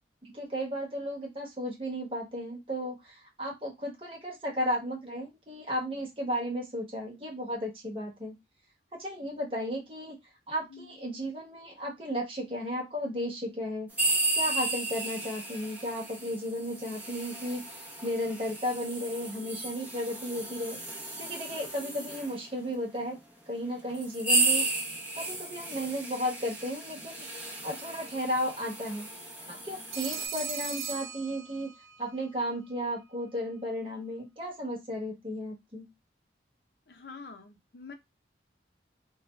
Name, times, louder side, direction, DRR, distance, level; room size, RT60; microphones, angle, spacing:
voice 1, 0.2-8.3 9.0-10.2 10.5-13.9 14.3-20.8 21.2-23.2 23.5-24.7 25.1-27.2 27.6-29.1 29.5-31.7 32.0-35.9, equal, 30° right, -1 dB, 0.9 m, -34 dB
sound 1, 13.9-22.4 23.1-23.2 23.9-30.3, right 2 dB, 10° right, 0.6 m, -34 dB
Telephone, 29.9-32.0, right 6 dB, 60° right, 0.5 m, -37 dB
voice 2, 36.9-37.9, left 4 dB, 60° left, 5 dB, 0.5 m, -46 dB
2.5 x 2.3 x 3.0 m, 0.20 s
head